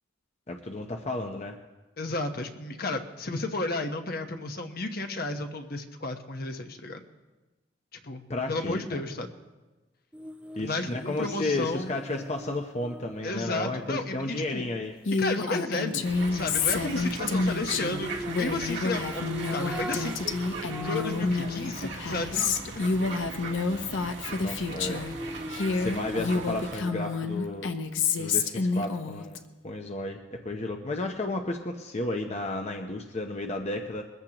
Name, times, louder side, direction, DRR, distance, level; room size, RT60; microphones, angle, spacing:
voice 1, 0.5-1.6 8.3-9.0 10.6-15.0 24.4-25.4 25.7-27.7 28.2-29.4 29.6-34.0, left 2 dB, 35° left, 3 dB, 0.8 m, -33 dB
voice 2, 2.0-7.0 8.0-8.2 8.5-9.3 10.6-11.9 13.2-14.7 15.2-16.1 16.3-22.8, left 2 dB, 55° left, 6 dB, 1.1 m, -33 dB
sound 1, 10.1-14.4 17.9-21.3 21.7-21.8 24.6-27.5 27.9-28.0, right 1 dB, 5° right, 0.5 m, -42 dB
Female speech woman speaking, 15.1-25.1 25.5-29.4, left 4 dB, 85° left, 0.8 m, -29 dB
sound 2, 16.0-26.8, right 3 dB, 65° right, 2.0 m, -39 dB
22.0 x 15.0 x 3.0 m, 1.2 s
head